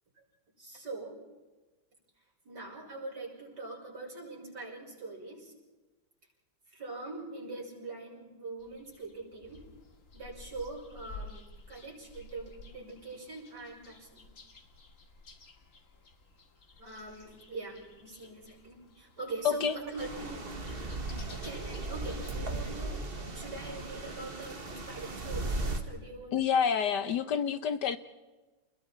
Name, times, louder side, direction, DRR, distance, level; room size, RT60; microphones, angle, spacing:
voice 1, 0.6-1.2 2.4-5.5 6.7-9.7 10.1-14.3 16.8-20.6 21.3-26.6, right 3 dB, 55° right, -1 dB, 6.5 m, -43 dB
sound 1, 8.6-22.4, left 3 dB, 40° left, 2.2 m, -53 dB
sound 2, 20.0-25.8, right 2 dB, 30° right, 1.7 m, -37 dB
voice 2, 26.3-28.0, left 7 dB, 65° left, 12 dB, 1.4 m, -28 dB
30.0 x 21.5 x 4.4 m, 1.2 s
omnidirectional pair, 2.1 m